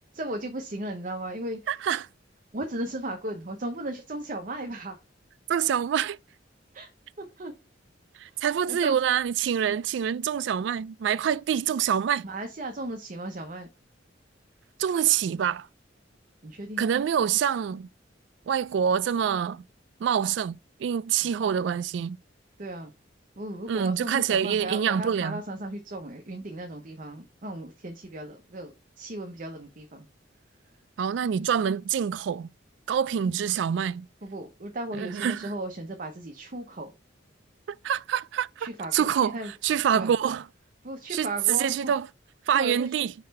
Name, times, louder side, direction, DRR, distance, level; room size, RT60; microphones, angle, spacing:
voice 1, 0.1-1.6 2.5-5.0 6.7-6.9 7.2-7.5 8.3-9.0 12.2-13.7 16.4-16.8 22.6-22.9 23.4-30.1 34.2-36.9 38.6-39.5 39.9-40.1 40.8-41.9 42.5-42.9, right 1 dB, 45° right, 0.8 m, -36 dB
voice 2, 1.7-2.1 5.5-6.2 8.2-12.2 14.8-15.7 16.8-17.9 18.5-19.6 20.0-22.2 23.7-25.4 31.0-32.5 32.9-34.1 35.0-35.5 37.7-40.5 41.1-42.1 42.5-43.1, right 8 dB, 65° right, 0.3 m, -26 dB
5.1 x 4.1 x 5.3 m
head